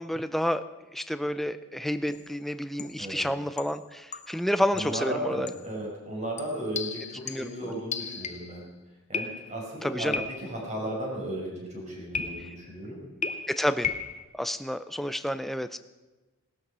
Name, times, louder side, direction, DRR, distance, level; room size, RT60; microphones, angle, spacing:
voice 1, 0.0-5.5 7.2-7.7 9.8-10.2 13.5-13.9 14.3-15.8, equal, ahead, 11 dB, 0.5 m, -30 dB
sound 1, 2.1-2.3 2.8-3.1 3.6-4.5 4.8-5.0 5.5-5.7 6.4-8.6 9.1-9.7 10.1-10.7 12.1-12.7 13.2-14.3, left 5 dB, 35° left, 0.8 m, -36 dB
voice 2, 4.7-8.6 9.1-13.0, right 1 dB, 35° right, -2 dB, 5.2 m, -35 dB
18.0 x 13.0 x 5.5 m, 1.2 s
head